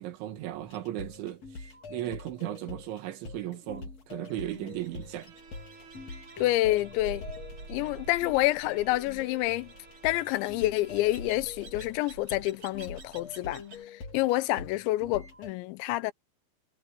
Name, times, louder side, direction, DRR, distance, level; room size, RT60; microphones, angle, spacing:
voice 1, 0.0-5.3, right 14 dB, 90° right, 4.1 m, -36 dB
sound 1, 0.6-15.5, left 4 dB, 40° left, 4.3 m, -45 dB
sound 2, 4.3-13.8, right 3 dB, 40° right, 4.1 m, -49 dB
Bowed string instrument, 5.1-11.5, right 3 dB, 60° right, 5.4 m, -55 dB
voice 2, 6.4-7.2 7.7-9.7 10.0-13.6 13.9-16.1, left 17 dB, 85° left, 3.1 m, -28 dB
omnidirectional pair, 5.2 m